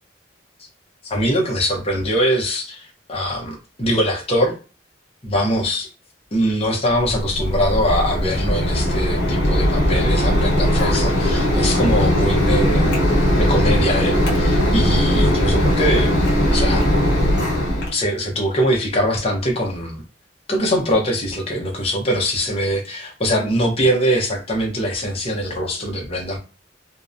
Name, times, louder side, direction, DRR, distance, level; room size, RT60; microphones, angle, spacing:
voice 1, 1.0-4.6 5.2-5.9 6.3-13.0 13.4-16.1 16.5-16.9 17.9-20.0 20.5-26.4, equal, 35° left, 0 dB, 0.7 m, -22 dB
Mechanisms, 6.9-17.9, equal, 65° left, 1.0 m, -18 dB
2.7 x 2.0 x 2.4 m, 0.35 s
head